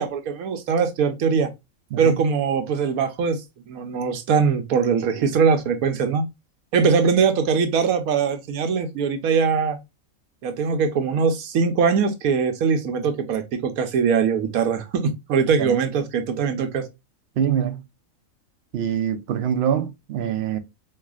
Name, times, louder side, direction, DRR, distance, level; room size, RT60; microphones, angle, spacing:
voice 1, 0.0-1.5 2.0-3.4 3.7-6.2 6.7-9.8 10.4-16.8, right 6 dB, 85° right, 1.2 m, -21 dB
voice 2, 17.4-17.8 18.7-20.6, right 9 dB, 60° right, 0.7 m, -24 dB
4.6 x 2.4 x 2.3 m
omnidirectional pair, 1.5 m